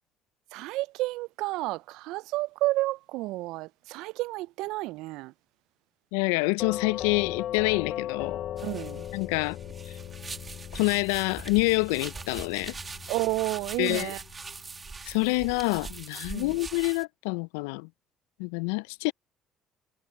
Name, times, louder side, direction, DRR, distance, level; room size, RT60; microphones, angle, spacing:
voice 1, 0.5-5.3 8.6-9.1 13.1-14.2 16.3-16.6, right 19 dB, 75° right, 0.4 m, -31 dB
voice 2, 6.1-8.4 9.1-9.6 10.7-12.7 13.8-14.1 15.1-17.9 18.4-19.1, left 28 dB, 80° left, 0.4 m, -27 dB
Doorbell, 6.6-15.4, left 11 dB, 60° left, 3.4 m, -39 dB
sound 1, 8.6-17.0, right 4 dB, 35° right, 2.5 m, -42 dB
hypercardioid pair, 55°, 0 cm